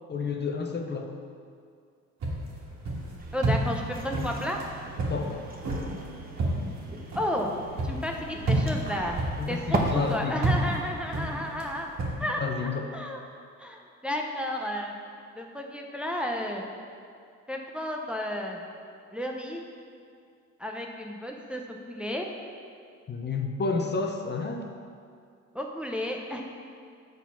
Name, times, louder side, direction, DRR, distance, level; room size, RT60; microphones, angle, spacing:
voice 1, 0.1-1.1 5.1-5.5 9.4-10.4 12.4-12.9 23.1-24.7, left 4 dB, 35° left, 3 dB, 0.7 m, -30 dB
sound 1, 2.2-12.1, right 2 dB, 60° right, 1.8 m, -31 dB
sound 2, 3.2-9.8, right 4 dB, 30° right, 1.0 m, -39 dB
voice 2, 3.3-4.6 7.1-7.5 7.8-9.2 9.5-11.9 12.2-13.2 13.6-14.9 15.4-16.6 17.5-18.6 19.1-19.6 20.6-22.3 25.5-26.5, left 1 dB, 5° right, 1 dB, 0.6 m, -32 dB
7.1 x 4.0 x 5.8 m, 2.3 s
cardioid pair, 90°, 30 cm